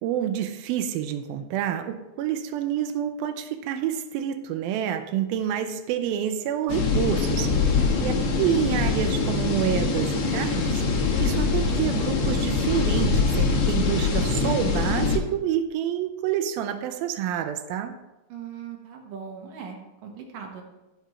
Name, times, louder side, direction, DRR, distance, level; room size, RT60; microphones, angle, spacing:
voice 1, 0.0-7.5 8.0-17.9, right 10 dB, 85° right, 7 dB, 2.4 m, -28 dB
sound 1, 6.7-15.2, left 4 dB, 75° left, 1.3 m, -23 dB
voice 2, 7.7-8.1 18.3-20.6, right 7 dB, 70° right, 1 dB, 2.9 m, -39 dB
15.0 x 5.1 x 4.3 m, 1.0 s
omnidirectional pair, 4.2 m